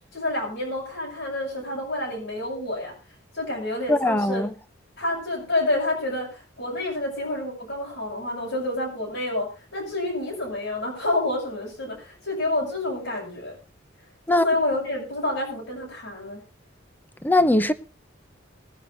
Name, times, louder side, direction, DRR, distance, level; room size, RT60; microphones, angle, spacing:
voice 1, 0.1-2.9 3.3-4.4 5.0-13.6 14.3-16.4, left 2 dB, 65° left, 7.7 m, -28 dB
voice 2, 3.9-4.5 14.3-14.5 17.2-17.7, left 1 dB, 10° left, 0.8 m, -20 dB
20.5 x 10.0 x 4.0 m
head